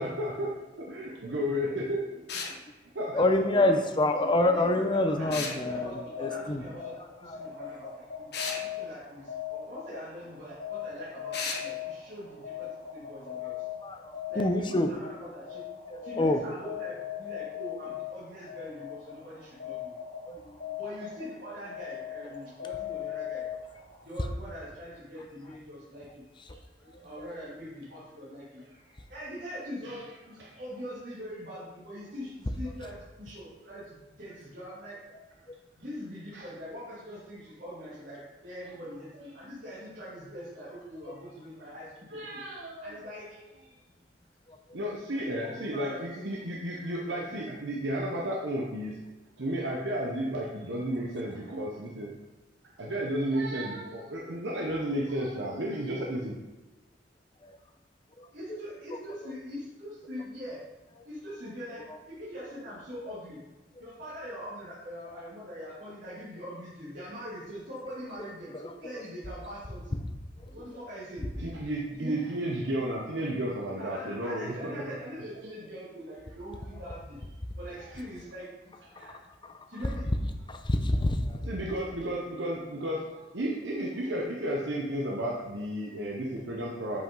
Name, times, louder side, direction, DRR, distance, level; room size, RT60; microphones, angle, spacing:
voice 1, 0.0-0.5 0.9-2.2 2.9-3.3 3.6-3.7 29.8-30.0 30.4-30.6 36.3-36.5 42.1-43.0 44.7-49.0 49.4-52.1 52.8-56.3 71.4-74.8 77.9-78.0 78.9-79.2 81.5-87.0, equal, 75° right, -2 dB, 0.9 m, -33 dB
sound 1, 2.3-2.6 5.3-5.6 8.3-8.6 11.3-11.6, left 4 dB, 65° left, 1.1 m, -33 dB
voice 2, 3.1-6.6 7.3-7.4 13.8-14.0 14.4-14.9 15.9-16.4 20.3-20.4 80.5-81.2, left 1 dB, 25° left, 6 dB, 0.6 m, -26 dB
voice 3, 4.1-13.6 14.3-15.6 16.0-19.9 20.7-23.5 24.0-26.2 27.0-28.6 29.1-30.0 30.3-35.0 35.8-42.4 42.8-43.3 45.2-46.1 58.3-60.6 61.0-63.4 63.8-70.0 70.5-71.2 71.9-72.1 73.8-77.2 77.6-78.5 79.7-80.0, equal, 60° right, -11 dB, 2.6 m, -42 dB
sound 2, 5.5-24.0, left 10 dB, 50° left, 1.3 m, -40 dB
7.9 x 5.2 x 3.8 m, 1.1 s
head